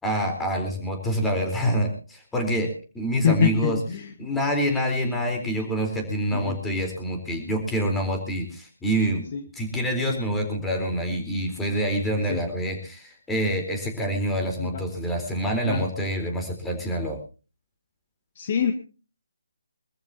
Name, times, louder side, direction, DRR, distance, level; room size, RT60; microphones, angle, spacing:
voice 1, 0.0-3.8 4.2-9.2 9.6-17.2, equal, 5° left, 3 dB, 4.1 m, -26 dB
voice 2, 3.2-4.1 6.3-6.6 9.3-9.4 12.3-12.4 14.6-14.8 15.7-15.9 18.4-18.7, left 7 dB, 40° left, 6 dB, 1.8 m, -24 dB
25.5 x 14.0 x 2.9 m, 0.34 s
figure-of-eight pair, 150°, 0 cm